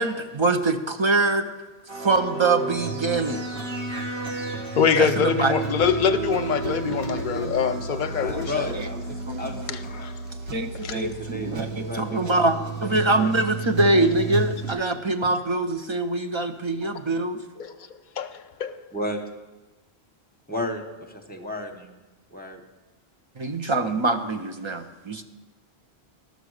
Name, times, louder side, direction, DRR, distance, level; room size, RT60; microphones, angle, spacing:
voice 1, 0.0-1.5 2.0-3.5 5.0-5.8 6.8-8.4 8.7-8.9 9.3-9.6 10.5-17.6 23.4-25.2, right 2 dB, 35° right, 6 dB, 0.6 m, -24 dB
sound 1, 1.9-14.7, right 4 dB, 60° right, 1.7 m, -32 dB
voice 2, 4.8-8.7 9.7-10.1 10.8-11.0 17.6-17.7 18.2-18.3 18.6-18.7, left 7 dB, 55° left, 8 dB, 0.7 m, -24 dB
voice 3, 8.1-10.1 10.9-13.4 18.9-19.2 20.5-20.8 21.1-21.9 22.3-22.6, left 1 dB, 10° left, 2 dB, 0.9 m, -34 dB
12.0 x 6.8 x 6.4 m, 1.1 s
omnidirectional pair, 1.1 m